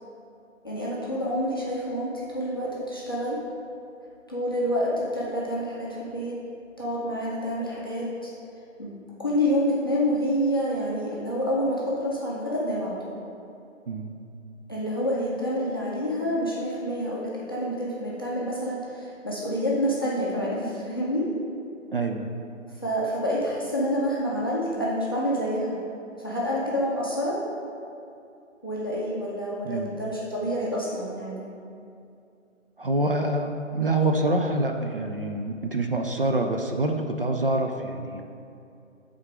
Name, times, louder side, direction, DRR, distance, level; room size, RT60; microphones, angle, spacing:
voice 1, 0.6-3.4 4.3-6.4 6.8-8.3 8.8-8.9 9.2-13.2 14.7-21.3 22.8-25.8 26.2-27.4 28.6-31.4, equal, 20° left, -6 dB, 0.5 m, -28 dB
voice 2, 21.9-22.4 29.6-29.9 32.8-38.3, right 2 dB, 45° right, 4 dB, 0.4 m, -26 dB
7.8 x 3.7 x 4.8 m, 2.6 s
figure-of-eight pair, 155°, 39 cm